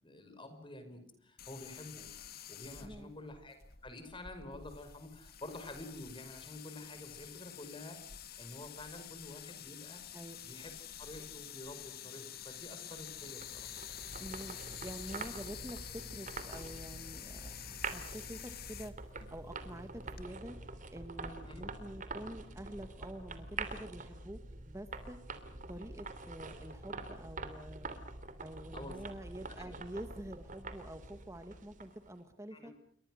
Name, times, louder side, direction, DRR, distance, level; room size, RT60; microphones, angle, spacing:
voice 1, 0.0-2.1 2.5-3.6 3.8-8.0 8.4-10.0 10.4-10.7 11.0-13.7 21.5-21.6 28.7-29.0 29.6-29.7 32.5-32.7, left 2 dB, 25° left, 8 dB, 5.4 m, -49 dB
sound 1, 1.4-20.3, left 10 dB, 50° left, 2.0 m, -49 dB
voice 2, 2.8-3.1 10.1-10.4 14.2-18.9 19.3-20.6 20.9-24.4 24.6-25.2 25.7-27.9 28.4-32.7, right 1 dB, 15° right, 7 dB, 1.6 m, -47 dB
sound 2, 13.1-32.1, right 3 dB, 40° right, 3.0 m, -46 dB
29.0 x 24.0 x 6.4 m, 0.63 s
head